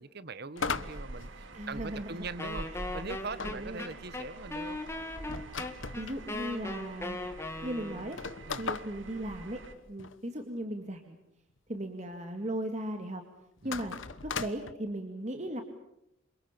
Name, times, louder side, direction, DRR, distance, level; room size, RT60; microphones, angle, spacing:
voice 1, 0.0-4.8 8.5-8.7 13.6-13.8, right 3 dB, 55° right, 16 dB, 1.1 m, -42 dB
sound 1, 0.6-2.1 3.4-6.2 6.9-7.0 7.2-7.3 8.0-10.2 13.6-14.7, left 5 dB, 75° left, 1.2 m, -38 dB
sound 2, 0.6-9.7, right 1 dB, 70° right, 2.2 m, -46 dB
voice 2, 1.5-2.2 2.7-2.8 3.4-3.9 6.0-7.2 7.6-8.2 8.6-9.6 9.9-11.2 11.7-13.2 13.6-14.0 14.2-15.6, right 1 dB, 35° right, 5 dB, 2.2 m, -37 dB
Wind instrument woodwind instrument, 2.4-8.2, left 2 dB, 15° left, 2.4 m, -39 dB
29.0 x 27.0 x 6.9 m, 0.82 s
head